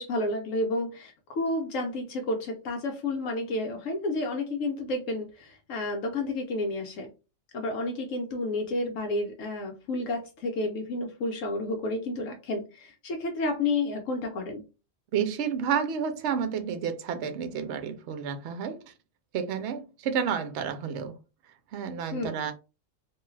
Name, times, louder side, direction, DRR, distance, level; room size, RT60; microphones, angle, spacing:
voice 1, 0.0-7.1 7.5-14.7 22.1-22.3, left 2 dB, 75° left, 1.0 m, -31 dB
voice 2, 15.1-18.8 19.3-21.2 21.7-22.5, right 7 dB, 65° right, 0.8 m, -30 dB
2.7 x 2.3 x 3.1 m
omnidirectional pair, 1.4 m